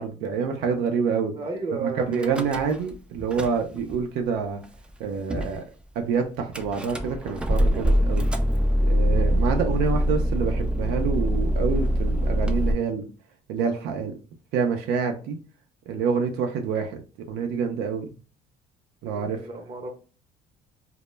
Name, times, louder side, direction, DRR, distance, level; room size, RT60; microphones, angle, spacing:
voice 1, 0.0-1.3 1.8-4.6 5.0-5.6 6.0-8.3 8.8-13.1 13.5-14.1 14.5-15.4 15.9-17.0 17.3-18.1 19.0-19.4, right 6 dB, 80° right, 3 dB, 0.4 m, -27 dB
voice 2, 1.3-2.5 19.0-19.9, right 3 dB, 35° right, 3 dB, 0.7 m, -33 dB
Car / Engine starting / Idling, 2.1-2.9 3.2-4.0 4.6-4.7 4.9-5.0 5.3-5.6 6.5-12.7, equal, 5° right, 0.3 m, -24 dB
2.0 x 2.0 x 3.1 m, 0.37 s
cardioid pair, 110°, 16 cm